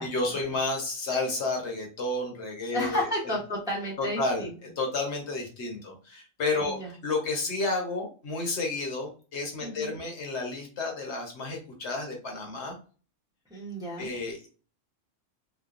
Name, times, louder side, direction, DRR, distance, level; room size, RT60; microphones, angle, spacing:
voice 1, 0.0-3.1 4.0-6.8 7.0-12.7 14.0-14.5, left 3 dB, 65° left, 1 dB, 1.0 m, -31 dB
voice 2, 2.7-4.5 6.6-6.9 9.6-10.0 13.5-14.1, equal, 5° right, -4 dB, 0.6 m, -32 dB
2.9 x 2.1 x 2.4 m, 0.37 s
omnidirectional pair, 1.3 m